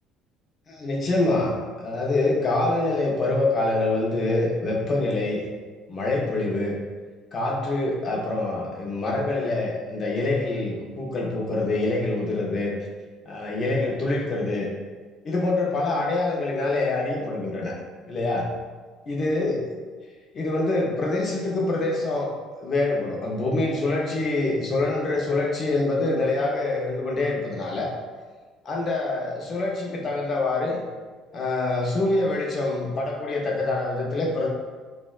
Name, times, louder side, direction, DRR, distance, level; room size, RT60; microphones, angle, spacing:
voice 1, 0.7-5.4 5.9-6.8 7.3-12.7 13.3-14.7 15.2-17.7 18.1-18.5 19.1-19.6 20.3-22.3 22.6-27.9 28.7-30.8 31.3-34.5, left 2 dB, 30° left, -1 dB, 0.3 m, -25 dB
3.4 x 2.0 x 2.2 m, 1.4 s
cardioid pair, 170°, 0 cm